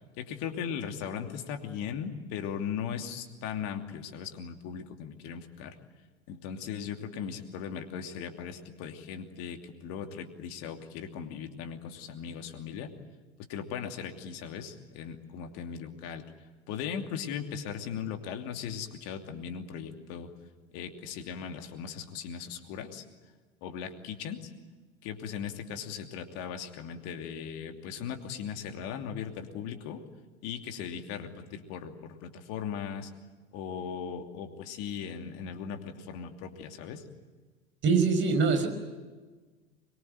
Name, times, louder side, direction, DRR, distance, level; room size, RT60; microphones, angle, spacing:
voice 1, 0.2-5.8 6.3-12.9 13.5-16.2 16.7-20.3 20.7-23.0 23.6-24.5 25.0-30.0 30.4-33.1 33.5-37.0, left 7 dB, 50° left, 6 dB, 2.9 m, -38 dB
voice 2, 37.8-38.7, right 5 dB, 35° right, 5 dB, 5.7 m, -23 dB
24.0 x 23.0 x 9.3 m, 1.3 s
figure-of-eight pair, 75°, 33 cm